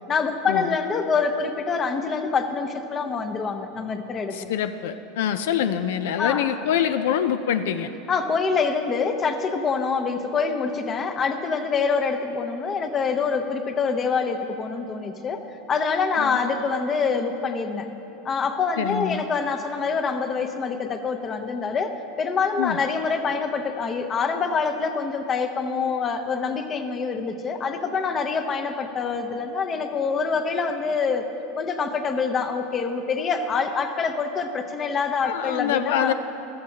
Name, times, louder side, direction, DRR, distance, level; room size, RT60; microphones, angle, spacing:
voice 1, 0.1-4.4 6.2-6.6 8.1-15.4 15.7-17.9 18.2-31.2 31.6-36.1, left 5 dB, 25° left, 7 dB, 0.7 m, -25 dB
voice 2, 4.3-7.9 16.2-16.4 18.8-19.2 22.6-22.8 35.2-36.1, left 9 dB, 80° left, 10 dB, 0.4 m, -25 dB
14.0 x 13.5 x 2.8 m, 2.9 s
supercardioid pair, 140°, 0 cm